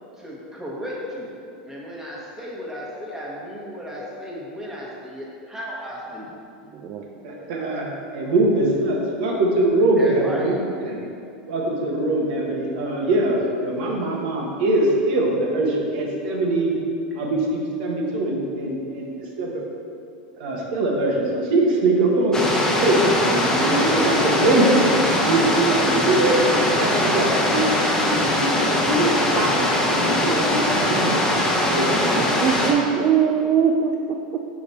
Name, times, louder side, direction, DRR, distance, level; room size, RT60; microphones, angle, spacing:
voice 1, 0.2-1.3 1.6-6.3 9.9-10.5 23.5-24.1 31.8-32.5, equal, 10° right, -5 dB, 1.4 m, -33 dB
voice 2, 6.7-7.0 32.2-34.2, right 7 dB, 40° right, 2 dB, 0.4 m, -21 dB
voice 3, 7.2-7.9 8.1-10.5 10.8-11.0 11.5-16.7 17.1-19.6 20.4-23.0 23.3-24.8 25.2-29.6 29.9-31.2 31.7-31.9 32.3-32.5, right 2 dB, 70° right, -1 dB, 1.2 m, -22 dB
sound 1, 22.3-32.7, left 1 dB, 10° left, 0.9 m, -21 dB
5.2 x 4.8 x 4.2 m, 2.5 s
supercardioid pair, 115°, 5 cm